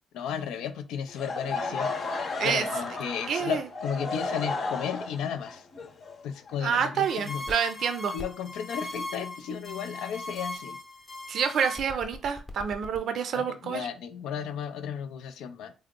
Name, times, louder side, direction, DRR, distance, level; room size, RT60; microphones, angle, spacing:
voice 1, 0.1-5.7 6.2-7.4 8.1-10.8 13.3-15.7, left 8 dB, 90° left, 8 dB, 0.4 m, -34 dB
Laughter / Crowd, 1.1-7.0, left 3 dB, 65° left, 0.9 m, -33 dB
voice 2, 3.3-3.6 6.6-8.1 11.3-13.8, right 7 dB, 65° right, 8 dB, 0.4 m, -28 dB
sound 1, 7.0-13.0, left 2 dB, 25° left, 0.7 m, -39 dB
3.6 x 2.0 x 3.6 m, 0.32 s
cardioid pair, 90°, 0 cm